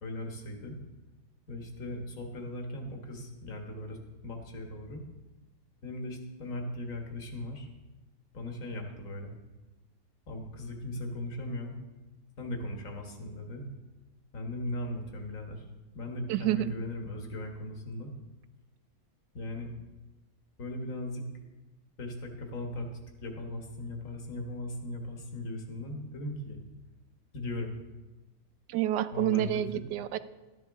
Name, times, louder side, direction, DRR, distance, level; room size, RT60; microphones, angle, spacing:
voice 1, 0.0-0.8 1.5-5.0 5.8-7.7 8.3-9.4 10.3-11.8 12.4-13.7 14.3-15.7 15.9-18.1 19.3-19.7 20.6-21.2 22.0-22.9 23.2-26.6 27.3-27.8 29.1-29.8, left 1 dB, 55° left, 2 dB, 1.8 m, -38 dB
voice 2, 16.3-16.7 28.7-30.2, right 14 dB, 85° right, 14 dB, 1.2 m, -28 dB
13.0 x 11.0 x 3.6 m, 1.1 s
omnidirectional pair, 1.8 m